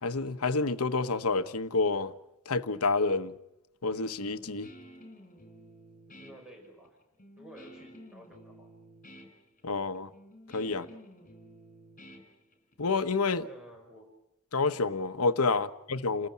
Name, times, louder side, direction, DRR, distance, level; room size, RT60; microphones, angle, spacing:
voice 1, 0.0-2.1 2.5-3.3 3.8-4.7 9.6-10.1 10.5-10.8 12.8-13.5 14.5-16.3, left 3 dB, 75° left, 1.1 m, -28 dB
Guitar, 4.3-12.9, equal, 35° left, 4.5 m, -52 dB
voice 2, 6.2-7.0 7.4-8.7 10.6-11.0 13.4-14.1 15.5-15.7, right 1 dB, 5° right, 5.6 m, -52 dB
29.5 x 14.5 x 9.3 m
head